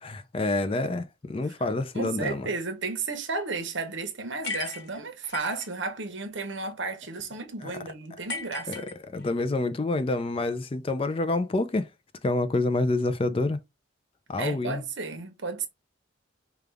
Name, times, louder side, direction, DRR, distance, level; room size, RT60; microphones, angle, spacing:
voice 1, 0.0-2.5 7.6-7.7 8.7-11.9 12.2-13.6 14.3-14.8, left 2 dB, 30° left, 0.4 m, -28 dB
voice 2, 1.9-8.9 14.4-15.7, right 3 dB, 70° right, 1.0 m, -33 dB
sound 1, 4.4-5.7 8.3-9.4, left 3 dB, 60° left, 1.1 m, -36 dB
5.1 x 2.3 x 3.4 m
head